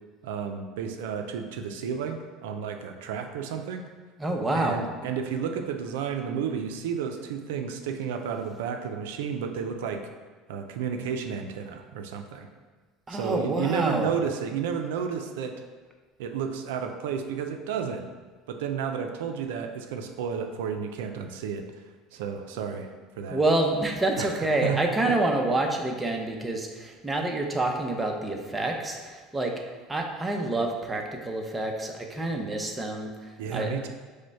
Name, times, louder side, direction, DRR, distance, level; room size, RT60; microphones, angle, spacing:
voice 1, 0.2-3.8 4.5-10.0 10.5-12.5 13.1-15.6 16.2-18.0 18.5-21.6 22.1-22.9 23.2-23.4 24.2-24.3 24.6-24.8 25.0-25.1 33.4-33.9, right 7 dB, 85° right, 5 dB, 0.4 m, -32 dB
voice 2, 4.2-4.8 13.1-14.1 23.3-29.5 29.9-33.7, right 2 dB, 15° right, 2 dB, 0.6 m, -27 dB
5.0 x 2.1 x 4.6 m, 1.4 s
supercardioid pair, 105°, 0 cm